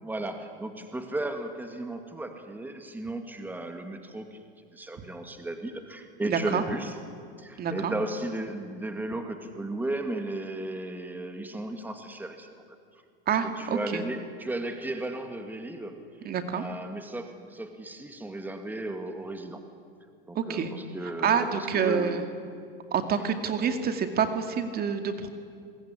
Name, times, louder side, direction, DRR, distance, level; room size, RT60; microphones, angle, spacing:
voice 1, 0.0-4.4 4.7-7.0 7.4-12.5 13.4-16.0 16.5-19.6 20.3-22.2 23.2-23.3, right 2 dB, 5° right, 6 dB, 2.3 m, -35 dB
voice 2, 6.3-6.6 7.6-7.9 13.3-14.0 16.2-16.6 20.3-20.7 21.2-22.2 22.9-25.3, right 7 dB, 30° right, 7 dB, 2.4 m, -27 dB
26.5 x 21.5 x 10.0 m, 2.4 s
hypercardioid pair, 110°, 29 cm